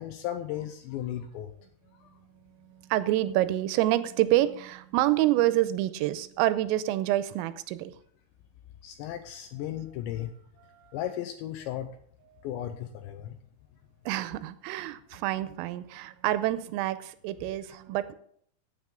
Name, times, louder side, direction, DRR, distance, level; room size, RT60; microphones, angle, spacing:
voice 1, 0.0-1.5 2.0-2.1 8.8-10.3 10.9-11.9 12.4-13.4, left 11 dB, 85° left, 8 dB, 2.6 m, -35 dB
voice 2, 2.6-7.9 10.7-11.1 14.1-18.1, right 15 dB, 85° right, 13 dB, 3.3 m, -27 dB
16.0 x 9.0 x 3.7 m, 0.63 s
omnidirectional pair, 5.8 m